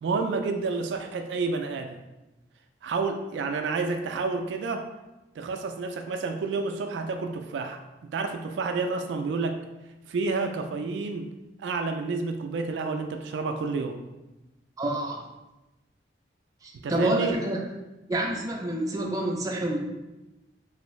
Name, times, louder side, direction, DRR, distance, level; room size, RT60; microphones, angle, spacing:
voice 1, 0.0-2.0 2.8-4.9 5.4-7.8 8.1-9.5 10.1-11.3 11.6-14.0 16.8-17.4, right 4 dB, 85° right, 5 dB, 0.3 m, -29 dB
voice 2, 14.8-15.2 16.6-17.6 18.1-19.8, right 1 dB, 20° right, -1 dB, 0.4 m, -28 dB
3.1 x 2.6 x 3.1 m, 1.0 s
head